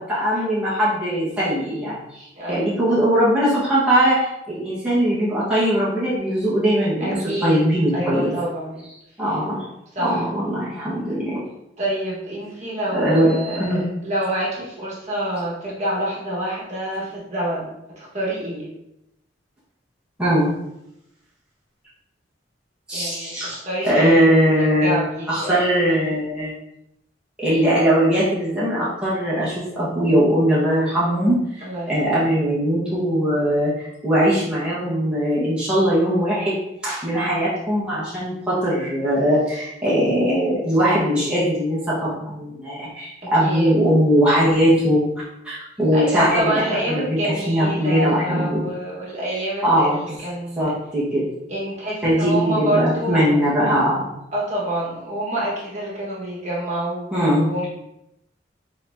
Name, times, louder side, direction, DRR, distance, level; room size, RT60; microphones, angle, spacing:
voice 1, 0.1-8.3 9.2-9.7 10.0-11.4 12.9-13.8 20.2-20.5 22.9-23.6 23.8-25.0 25.3-26.5 27.4-36.6 36.8-45.0 45.4-48.7 49.6-50.0 50.6-51.3 52.0-54.1 57.1-57.6, equal, 5° right, -10 dB, 1.3 m, -20 dB
voice 2, 2.3-2.8 7.0-7.6 7.9-8.8 9.9-10.2 11.8-18.7 22.9-25.6 31.6-32.1 43.4-43.7 45.9-50.7 51.5-53.3 54.3-57.7, equal, 40° right, -6 dB, 1.5 m, -27 dB
4.3 x 4.3 x 2.7 m, 0.84 s
head